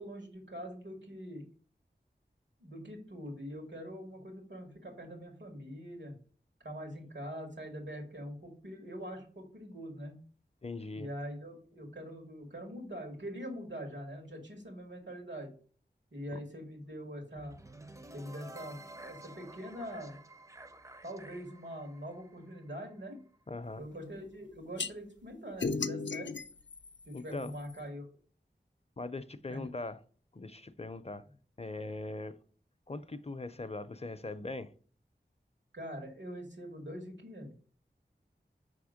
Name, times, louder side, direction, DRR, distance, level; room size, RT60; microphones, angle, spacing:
voice 1, 0.0-1.4 2.6-6.1 6.6-10.2 10.9-15.5 16.1-17.6 18.1-20.2 21.0-23.2 23.8-26.3 27.0-28.0 29.5-29.6 35.7-37.5, equal, 90° right, 2.1 m, -43 dB
voice 2, 10.6-11.1 16.3-16.4 23.5-23.8 27.1-27.5 29.0-30.0 30.3-31.2 31.6-32.3 32.9-34.7, left 2 dB, 35° left, 0.5 m, -40 dB
sound 1, 17.4-23.4, right 2 dB, 15° right, 0.5 m, -52 dB
sound 2, 24.8-24.9 25.6-27.8, left 4 dB, 80° left, 0.5 m, -36 dB
5.5 x 3.5 x 5.0 m
wide cardioid pair, 55°, 18 cm